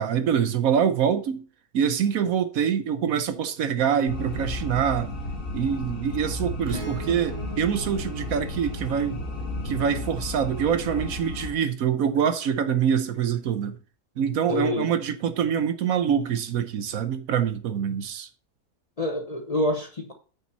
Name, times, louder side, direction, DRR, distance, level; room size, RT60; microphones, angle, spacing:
voice 1, 0.0-1.4 1.7-5.2 5.5-9.2 9.6-13.8 14.2-18.3, right 8 dB, 70° right, 1.1 m, -25 dB
sound 1, 4.1-11.5, left 2 dB, 60° left, 1.9 m, -33 dB
Acoustic guitar / Strum, 6.7-11.3 13.1-13.2, right 2 dB, 25° right, 1.5 m, -42 dB
voice 2, 14.5-14.9 19.0-20.1, left 1 dB, 30° left, 0.8 m, -27 dB
8.8 x 5.7 x 4.0 m
omnidirectional pair, 1.6 m